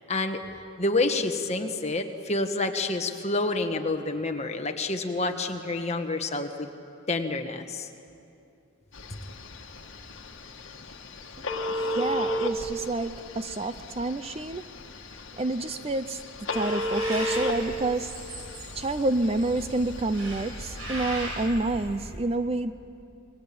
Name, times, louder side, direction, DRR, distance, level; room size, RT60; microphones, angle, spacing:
voice 1, 0.1-0.4 0.8-6.7 7.1-7.9, left 2 dB, 30° left, 5 dB, 1.5 m, -28 dB
Telephone, 9.0-21.5, left 1 dB, 55° left, 1.8 m, -34 dB
voice 2, 11.7-14.6 15.3-16.2 16.5-18.2 18.7-22.7, right 2 dB, 25° right, 12 dB, 0.5 m, -28 dB
sound 1, 16.5-22.2, right 1 dB, 70° right, 6.8 m, -38 dB
28.5 x 21.0 x 8.6 m, 2.6 s
head